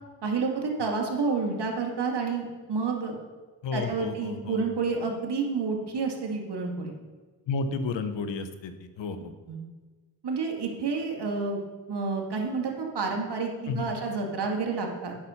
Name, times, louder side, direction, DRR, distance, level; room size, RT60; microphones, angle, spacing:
voice 1, 0.2-3.2 3.7-6.9 9.5-9.6 10.2-11.6 11.9-15.2, right 4 dB, 60° right, 1 dB, 2.0 m, -29 dB
voice 2, 3.6-4.6 7.5-9.3 13.7-13.9, left 4 dB, 75° left, 9 dB, 1.0 m, -32 dB
8.6 x 6.2 x 5.7 m, 1.3 s
supercardioid pair, 45°, 45 cm